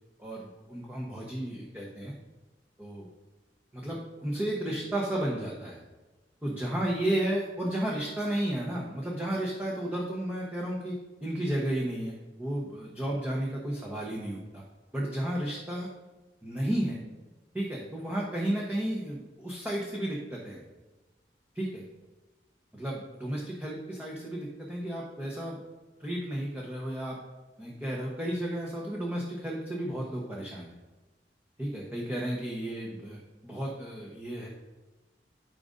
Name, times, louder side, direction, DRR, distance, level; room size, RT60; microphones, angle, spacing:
voice 1, 0.2-2.1 2.8-3.1 3.7-5.8 6.4-14.6 14.9-15.9 16.4-17.0 17.5-20.6 21.5-21.8 22.7-25.6 26.0-27.2 27.6-30.7 31.6-34.5, right 1 dB, 10° right, -4 dB, 1.0 m, -33 dB
12.5 x 5.1 x 2.6 m, 1.1 s
head